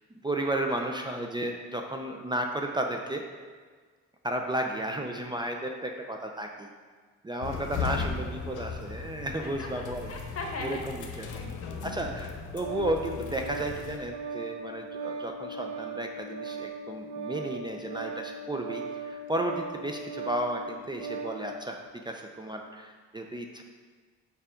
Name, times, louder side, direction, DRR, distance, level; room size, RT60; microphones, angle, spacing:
voice 1, 0.2-3.2 4.2-6.7 7.2-10.1 10.6-11.3 11.8-21.8 22.1-23.6, right 1 dB, 15° right, 2 dB, 0.5 m, -33 dB
sound 1, 7.4-14.0, left 5 dB, 80° left, 0.9 m, -37 dB
voice 2, 9.4-10.8 11.1-11.9, left 2 dB, 50° left, 1 dB, 1.4 m, -40 dB
Organ, 12.0-21.5, right 4 dB, 90° right, 0.8 m, -38 dB
5.7 x 4.8 x 5.0 m, 1.5 s
cardioid pair, 90°, 30 cm